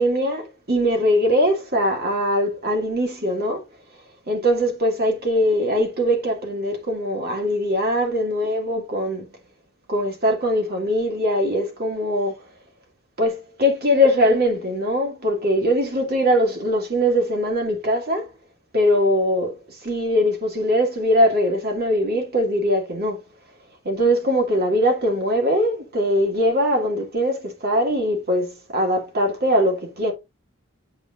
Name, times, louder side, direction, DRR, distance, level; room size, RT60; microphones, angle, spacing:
voice 1, 0.0-3.6 4.3-9.3 9.9-12.4 13.2-18.3 18.7-23.2 23.8-30.1, equal, 45° right, 2.4 m, -21 dB
8.4 x 4.9 x 2.6 m
head